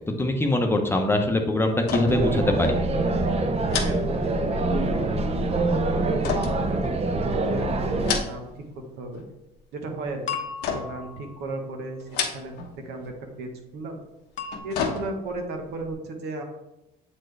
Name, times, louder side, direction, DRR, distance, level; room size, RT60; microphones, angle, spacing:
voice 1, 0.2-2.8, left 1 dB, 15° left, 3 dB, 0.8 m, -23 dB
sound 1, 1.8-2.4 2.6-2.8 3.7-4.8 6.2-7.3 7.9-8.7 9.0-9.5 10.6-11.1 12.0-12.8 13.0-13.2 14.3-15.4 15.9-16.0, left 6 dB, 85° left, 1.0 m, -31 dB
sound 2, 2.1-8.2, right 2 dB, 35° right, 0.7 m, -25 dB
voice 2, 3.8-8.6 9.0-9.2 9.7-10.2 10.7-12.5 12.8-14.0 14.6-16.4, right 2 dB, 75° right, 3 dB, 1.2 m, -35 dB
sound 3, 10.3-11.8 14.4-14.6, left 6 dB, 50° left, 0.8 m, -35 dB
7.6 x 4.4 x 3.3 m, 0.96 s
cardioid pair, 110°, 17 cm